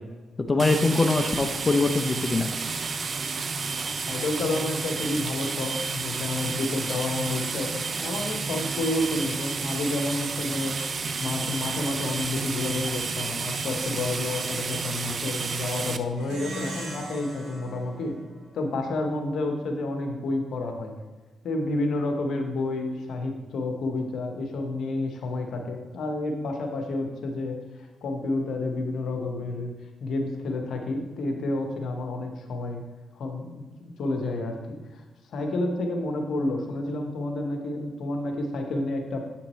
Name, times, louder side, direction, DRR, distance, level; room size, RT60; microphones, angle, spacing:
voice 1, 0.5-2.5, left 3 dB, 30° left, 5 dB, 0.5 m, -23 dB
sound 1, 0.6-16.0, right 4 dB, 50° right, 0.4 m, -31 dB
voice 2, 4.1-10.8 11.2-18.2 18.5-20.9 21.4-27.6 28.0-29.7 30.0-32.8 33.1-35.0 35.3-39.2, left 2 dB, 70° left, 3 dB, 1.0 m, -30 dB
Plucked string instrument, 16.2-19.0, right 1 dB, 80° right, 2.1 m, -39 dB
7.8 x 5.8 x 3.1 m, 1.3 s
supercardioid pair, 60°, 0 cm